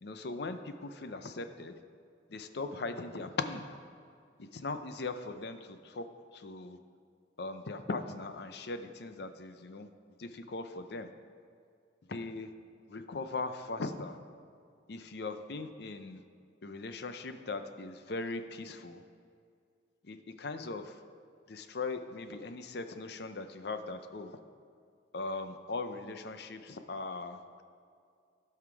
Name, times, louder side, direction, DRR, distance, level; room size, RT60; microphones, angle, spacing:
voice 1, 0.0-1.8 2.3-3.6 4.4-6.0 6.3-6.8 7.4-9.9 10.2-11.1 12.1-12.5 12.9-14.2 14.9-16.2 16.6-19.0 20.0-21.0 21.5-24.4 25.1-27.6, left 3 dB, 60° left, 8 dB, 0.6 m, -39 dB
15.5 x 5.8 x 4.7 m, 2.3 s
head